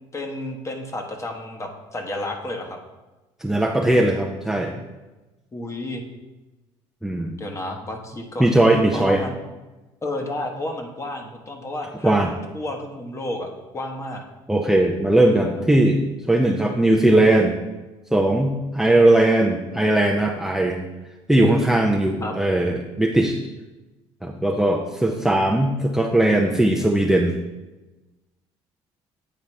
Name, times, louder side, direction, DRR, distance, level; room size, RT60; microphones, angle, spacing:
voice 1, 0.1-2.8 5.5-6.0 7.4-8.5 8.9-9.3 10.0-12.2 12.5-14.2 15.3-15.7 22.2-22.3, left 1 dB, 25° left, 4 dB, 1.0 m, -31 dB
voice 2, 3.4-4.7 7.0-7.4 8.4-9.2 12.0-12.3 14.5-16.0 16.3-17.6 18.1-20.8 21.3-23.4 24.2-27.4, right 1 dB, 5° right, 1 dB, 0.5 m, -19 dB
8.6 x 4.0 x 3.2 m, 1.1 s
supercardioid pair, 90°, 12 cm